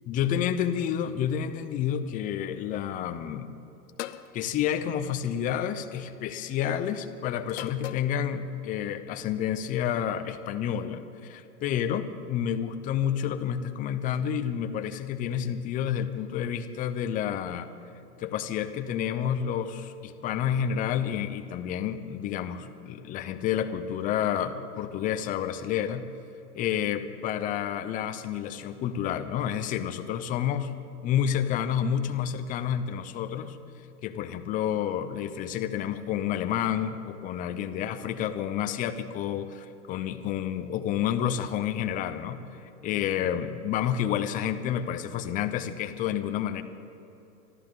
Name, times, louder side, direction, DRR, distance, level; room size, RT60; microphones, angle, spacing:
voice 1, 0.1-3.5 4.3-17.7 18.2-26.1 26.5-30.7 31.0-33.6 34.0-42.4 42.8-46.6, left 9 dB, 20° left, 9 dB, 0.6 m, -29 dB
sound 1, 4.0-4.3 5.5-5.8 7.5-8.2, left 13 dB, 50° left, 0.7 m, -38 dB
25.0 x 14.0 x 3.8 m, 2.9 s
hypercardioid pair, 130°, 46 cm